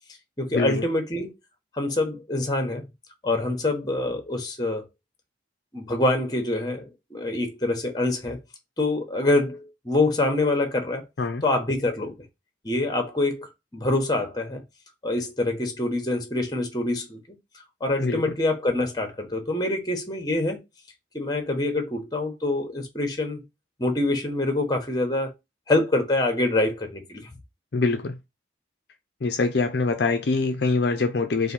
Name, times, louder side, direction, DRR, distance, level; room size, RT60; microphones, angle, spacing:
voice 1, 0.4-1.3 1.7-2.9 3.2-4.8 5.7-8.4 8.8-11.0 11.4-12.1 12.6-14.6 15.0-17.2 17.8-20.6 21.1-23.4 23.8-25.3 25.7-27.3, left 2 dB, 20° left, 1.0 m, -25 dB
voice 2, 18.0-18.3 27.7-28.2 29.2-31.5, left 3 dB, 60° left, 0.5 m, -24 dB
4.1 x 2.6 x 4.0 m
head